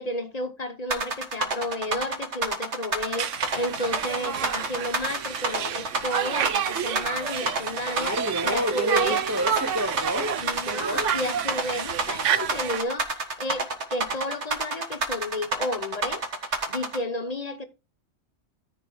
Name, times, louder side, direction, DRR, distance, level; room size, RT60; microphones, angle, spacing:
voice 1, 0.0-8.2 8.4-9.2 10.4-17.7, left 1 dB, 35° left, 1.0 m, -32 dB
sound 1, 0.9-17.0, right 3 dB, 70° right, 1.9 m, -28 dB
Conversation, 3.1-12.8, right 9 dB, 90° right, 1.1 m, -30 dB
voice 2, 8.0-11.1, equal, 15° right, 0.6 m, -29 dB
14.0 x 4.8 x 4.7 m
omnidirectional pair, 1.2 m